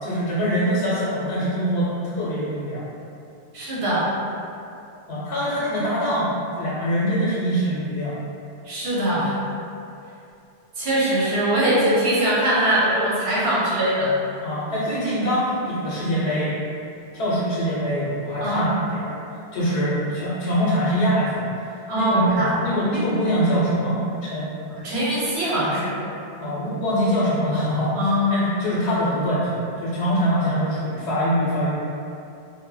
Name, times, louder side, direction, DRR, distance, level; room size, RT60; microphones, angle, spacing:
voice 1, 0.0-2.8 5.1-8.2 14.4-16.5 17.1-19.1 19.5-24.5 26.4-31.8, equal, 80° left, -8 dB, 0.8 m, -24 dB
voice 2, 3.5-4.1 8.6-9.4 10.8-14.1 18.4-18.7 21.9-22.5 24.8-25.9 27.9-28.4, right 1 dB, 85° right, -7 dB, 1.0 m, -22 dB
2.0 x 2.0 x 3.7 m, 2.6 s
omnidirectional pair, 1.1 m